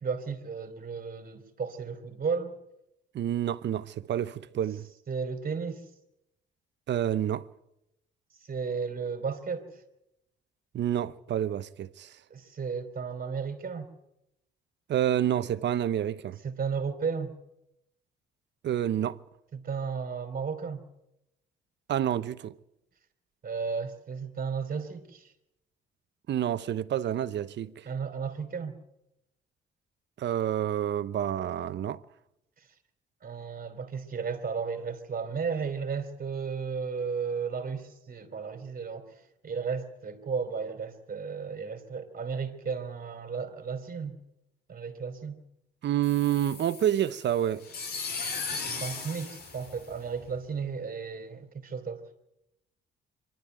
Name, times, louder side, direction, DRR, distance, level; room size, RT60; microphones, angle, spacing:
voice 1, 0.0-2.5 5.1-5.8 8.4-9.8 12.3-13.9 16.4-17.3 19.6-20.8 23.4-25.3 27.8-28.8 33.2-44.2 44.7-45.4 48.6-52.0, right 5 dB, 45° right, 3.1 m, -34 dB
voice 2, 3.1-4.9 6.9-7.5 10.7-12.1 14.9-16.4 18.6-19.2 21.9-22.5 26.3-27.9 30.2-32.0 45.8-47.6, right 11 dB, 65° right, 0.8 m, -28 dB
sound 1, 46.0-50.4, left 4 dB, 50° left, 3.3 m, -37 dB
24.5 x 12.0 x 9.1 m
cardioid pair, 90°, 20 cm